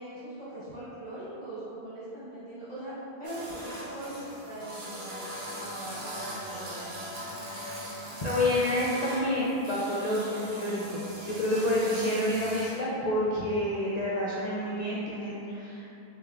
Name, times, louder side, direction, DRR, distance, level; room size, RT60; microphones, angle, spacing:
voice 1, 0.0-7.0, right 1 dB, 40° right, -13 dB, 1.5 m, -41 dB
sound 1, 3.2-12.8, right 1 dB, 75° right, 1.1 m, -40 dB
voice 2, 8.2-15.9, left 1 dB, 55° left, -7 dB, 0.5 m, -28 dB
6.4 x 2.2 x 2.3 m, 2.7 s
omnidirectional pair, 1.1 m